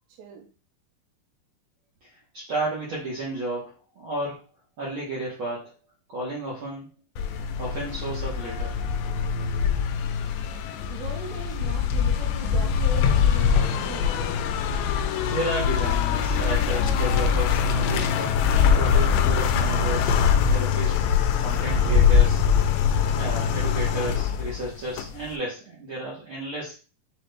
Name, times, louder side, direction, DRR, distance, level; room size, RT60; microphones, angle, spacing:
voice 1, 0.2-0.5 10.9-14.2, right 5 dB, 85° right, 2 dB, 2.8 m, -39 dB
voice 2, 2.3-4.4 4.8-5.6 6.1-6.9 7.6-8.7 15.2-18.1 18.7-20.9 21.4-22.6 23.1-26.7, right 1 dB, 65° right, -6 dB, 1.2 m, -32 dB
sound 1, 7.2-25.3, left 7 dB, 90° left, 2.5 m, -23 dB
6.4 x 2.5 x 3.3 m, 0.35 s
omnidirectional pair, 4.2 m